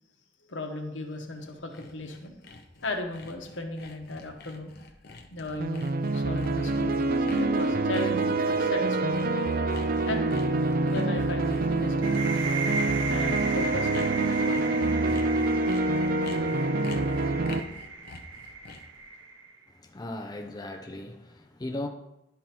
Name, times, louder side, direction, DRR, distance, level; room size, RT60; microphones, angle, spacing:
voice 1, 0.5-2.4 2.8-4.7 5.3-9.2 10.1-10.3 10.8-12.1 13.1-14.9, left 2 dB, 90° left, 1.1 m, -36 dB
Sawing, 1.2-19.0, left 3 dB, 60° left, 0.8 m, -47 dB
sound 1, 5.6-17.6, right 2 dB, 50° right, 0.5 m, -26 dB
sound 2, 12.0-19.6, right 4 dB, 90° right, 0.8 m, -35 dB
voice 2, 19.8-21.9, left 1 dB, 20° left, 0.6 m, -37 dB
10.5 x 3.8 x 4.4 m
head